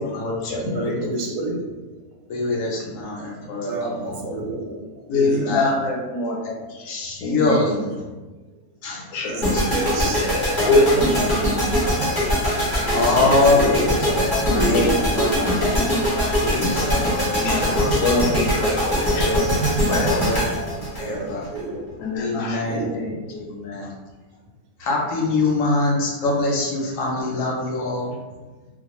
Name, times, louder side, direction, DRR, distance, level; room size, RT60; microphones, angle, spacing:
voice 1, 0.0-1.0 2.3-4.2 5.1-5.7 6.4-7.9 8.8-9.0 9.5-9.8 10.1-10.3 10.6-11.3 12.9-14.7 16.1-18.5 20.1-21.5 22.2-23.9 24.8-28.1, left 2 dB, 70° left, -2 dB, 0.9 m, -25 dB
voice 2, 0.7-1.8 3.6-5.0 5.3-5.5 5.8-5.9 9.2-10.3 12.8-14.2 14.5-15.4 21.0-21.9 22.6-23.1, right 2 dB, 85° right, 1 dB, 1.1 m, -30 dB
voice 3, 5.1-6.4 7.2-7.6 9.1-9.5 10.6-11.2 13.3-13.7 14.7-15.6 17.3-19.4 19.9-20.2 22.0-23.1, left 2 dB, 85° left, 0 dB, 1.1 m, -24 dB
sound 1, 9.4-21.6, equal, 20° left, 0.7 m, -22 dB
2.3 x 2.3 x 2.9 m, 1.2 s
omnidirectional pair, 1.6 m